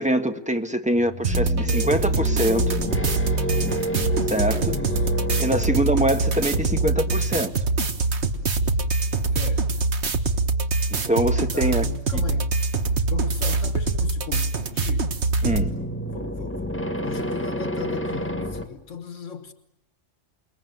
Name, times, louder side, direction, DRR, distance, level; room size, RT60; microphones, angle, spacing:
voice 1, 0.0-2.8 4.3-4.7 5.4-7.5 10.9-11.8 12.1-12.2 15.4-15.7, right 1 dB, 5° right, 1.5 m, -24 dB
sound 1, 0.9-7.7 15.3-18.7, equal, 10° left, 1.8 m, -30 dB
sound 2, 1.2-15.7, right 3 dB, 65° right, 1.8 m, -24 dB
voice 2, 4.7-5.7 9.3-9.8 11.5-12.5 13.0-15.1 16.1-19.5, left 5 dB, 80° left, 1.8 m, -38 dB
28.5 x 21.5 x 9.5 m
omnidirectional pair, 1.3 m